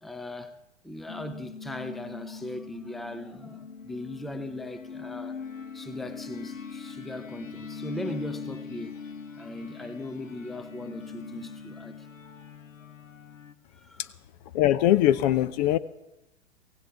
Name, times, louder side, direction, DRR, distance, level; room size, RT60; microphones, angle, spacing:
voice 1, 0.0-0.6 0.8-5.4 5.7-9.1 9.3-12.3 12.8-12.9 13.7-14.1, left 1 dB, ahead, 0.7 m, -39 dB
sound 1, 1.1-13.5, left 5 dB, 85° left, 1.1 m, -41 dB
voice 2, 14.5-15.8, left 13 dB, 35° left, 0.7 m, -21 dB
23.5 x 17.0 x 3.5 m
figure-of-eight pair, 110°, 38 cm